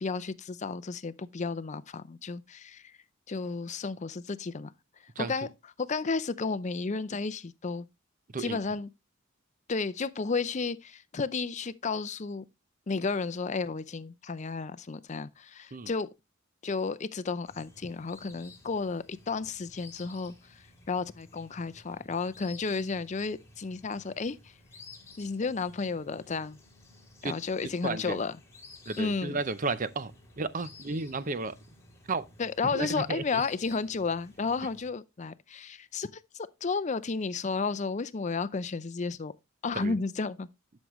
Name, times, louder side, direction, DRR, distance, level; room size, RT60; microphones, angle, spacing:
voice 1, 0.0-2.8 3.3-4.7 5.2-5.5 5.8-7.9 8.4-8.9 9.7-12.4 12.9-16.1 16.6-20.3 20.9-24.4 25.2-26.6 27.2-28.3 29.0-29.4 32.4-36.1 36.3-39.3 39.6-40.5, left 4 dB, 35° left, 0.5 m, -32 dB
sound 1, 17.4-34.9, left 3 dB, 15° left, 3.3 m, -54 dB
voice 2, 27.8-28.2 28.9-30.1 30.4-31.5 32.1-32.2 32.7-33.4 39.7-39.9, right 3 dB, 40° right, 0.6 m, -33 dB
11.5 x 6.3 x 3.1 m
head